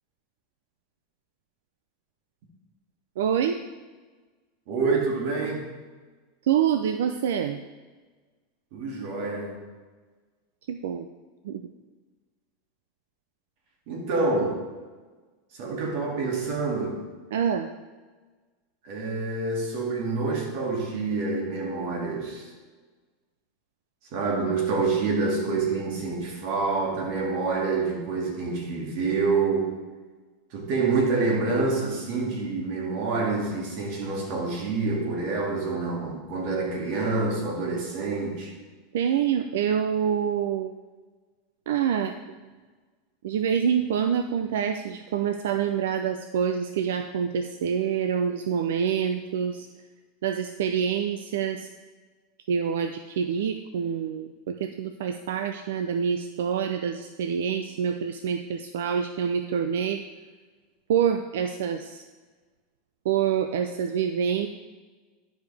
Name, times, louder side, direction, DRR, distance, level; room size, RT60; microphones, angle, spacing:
voice 1, 3.2-3.6 6.4-7.6 10.7-11.1 11.4-11.6 17.3-17.7 38.9-40.7 41.7-42.4 43.2-49.7 50.2-51.7 52.5-60.0 60.9-62.0 63.0-64.5, right 8 dB, 90° right, 7 dB, 0.4 m, -26 dB
voice 2, 4.7-5.7 8.7-9.6 13.9-14.6 15.6-17.0 18.8-22.5 24.1-29.7 30.5-38.5, right 3 dB, 60° right, -1 dB, 2.2 m, -27 dB
11.0 x 5.0 x 3.4 m, 1.3 s
supercardioid pair, 150°, 0 cm